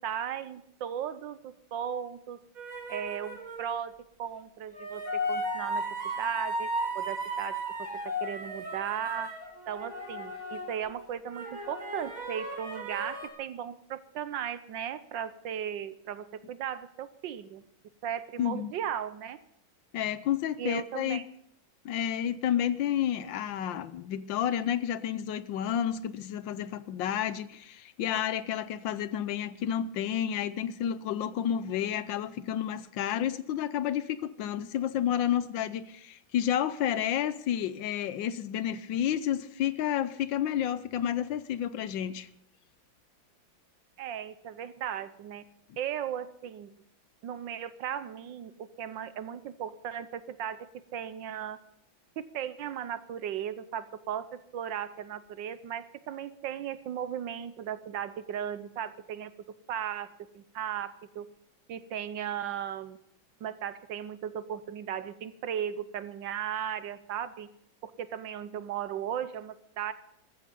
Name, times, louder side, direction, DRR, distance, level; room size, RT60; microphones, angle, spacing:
voice 1, 0.0-2.4 2.9-3.9 4.2-5.0 5.3-5.8 6.2-6.7 6.9-7.5 8.2-9.3 9.7-17.6 18.0-19.4 20.6-21.2 44.0-45.4 45.8-46.7 47.2-50.7 50.9-51.6 52.2-59.3 59.7-60.1 60.3-61.3 61.7-63.0 63.4-67.5 67.8-69.9, right 9 dB, 70° right, 1.5 m, -36 dB
sound 1, 2.6-3.8 4.7-10.9 11.3-13.3, right 1 dB, 90° right, 5.5 m, -35 dB
voice 2, 18.4-18.7 19.9-21.2 21.8-42.3, left 10 dB, 75° left, 1.4 m, -30 dB
14.5 x 14.0 x 5.4 m
omnidirectional pair, 2.1 m